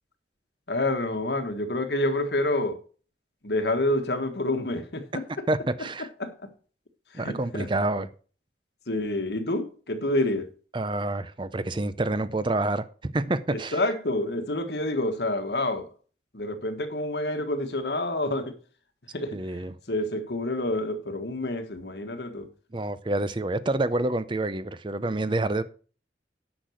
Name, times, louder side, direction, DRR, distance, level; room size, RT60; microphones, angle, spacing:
voice 1, 0.7-2.8 3.4-5.5 6.0-6.5 7.1-7.7 8.9-10.5 13.5-15.9 16.3-18.6 19.1-22.5, left 1 dB, 70° left, 1.5 m, -28 dB
voice 2, 5.5-6.1 7.1-8.1 10.7-13.7 19.3-19.7 22.7-25.6, right 2 dB, 25° right, 0.5 m, -28 dB
10.0 x 6.1 x 6.4 m
head